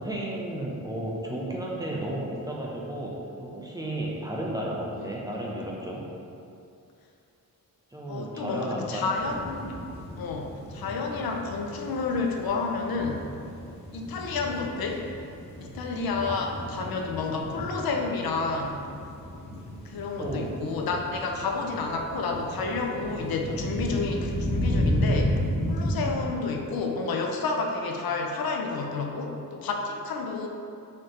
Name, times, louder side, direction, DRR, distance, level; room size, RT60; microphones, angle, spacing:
voice 1, 0.0-6.0 7.9-9.1 16.3-16.5 20.2-20.5, right 1 dB, 10° right, -3 dB, 0.6 m, -33 dB
voice 2, 8.1-9.7 10.2-13.2 13.9-15.0 15.6-18.9 19.8-25.4 25.7-30.5, left 4 dB, 80° left, 2 dB, 0.6 m, -30 dB
sound 1, 9.1-26.1, equal, 15° left, 1.2 m, -33 dB
4.3 x 3.2 x 3.7 m, 2.6 s
wide cardioid pair, 105°, 35 cm